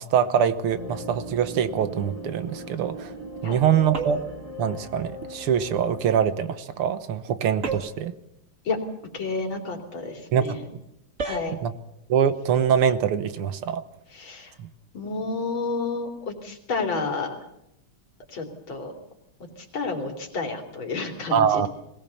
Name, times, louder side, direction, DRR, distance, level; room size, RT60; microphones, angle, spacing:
voice 1, 0.0-3.1 3.4-4.2 4.6-8.2 10.3-10.6 11.6-11.7 12.1-13.8 14.6-14.7 21.3-21.7, right 8 dB, 90° right, 12 dB, 2.0 m, -23 dB
sound 1, 0.7-6.4, equal, 15° right, 5.6 m, -39 dB
sound 2, 3.9-4.4 7.6-8.1 11.2-11.5, right 4 dB, 35° right, 2.2 m, -31 dB
voice 2, 9.1-10.7 11.2-11.6 14.1-14.5 14.9-17.4 18.3-18.9 19.7-21.7, left 3 dB, 65° left, 3 dB, 3.7 m, -30 dB
21.0 x 18.5 x 7.0 m, 0.82 s
omnidirectional pair, 2.4 m